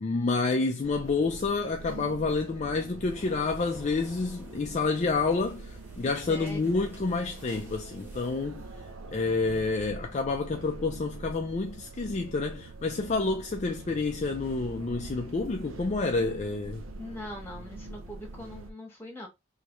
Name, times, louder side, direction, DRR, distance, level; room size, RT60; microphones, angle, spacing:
voice 1, 0.0-8.6 9.1-16.8, left 3 dB, 35° left, 0.4 m, -29 dB
sound 1, 0.8-18.7, right 3 dB, 90° right, 0.5 m, -44 dB
sound 2, 3.1-8.9, equal, 10° right, 1.6 m, -52 dB
voice 2, 6.2-6.8 17.0-19.3, left 1 dB, 10° left, 1.4 m, -41 dB
3.2 x 3.0 x 3.1 m
head